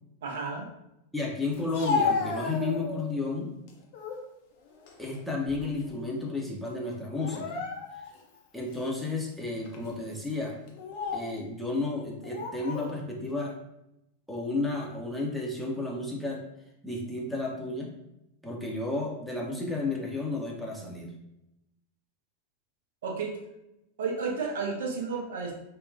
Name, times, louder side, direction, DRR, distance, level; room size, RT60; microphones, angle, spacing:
voice 1, 0.2-0.7 23.0-23.3 24.0-25.5, right 4 dB, 60° right, 0 dB, 0.6 m, -32 dB
voice 2, 1.1-3.5 5.0-7.6 8.5-10.6 11.1-13.5 14.3-16.4 16.8-17.9 18.4-21.1, left 3 dB, ahead, -3 dB, 0.6 m, -32 dB
Speech, 1.5-3.2 3.7-4.3 4.7-5.9 6.2-6.4 7.2-8.2 8.7-8.9 9.6-9.9 10.7-11.4 12.2-12.9, left 4 dB, 50° left, 0.5 m, -33 dB
3.5 x 2.2 x 2.4 m, 0.86 s
figure-of-eight pair, 90°, 0 cm